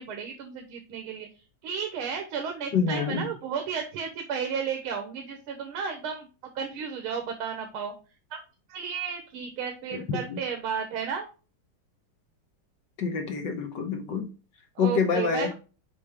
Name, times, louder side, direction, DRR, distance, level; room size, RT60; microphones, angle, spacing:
voice 1, 0.0-6.3 6.6-7.9 8.3-8.4 8.7-11.3 14.8-15.5, right 6 dB, 85° right, 4 dB, 1.9 m, -33 dB
voice 2, 2.7-3.2 10.1-10.2 13.0-14.3 14.8-15.5, left 6 dB, 60° left, 5 dB, 1.6 m, -26 dB
6.8 x 5.2 x 3.5 m, 0.33 s
omnidirectional pair, 2.3 m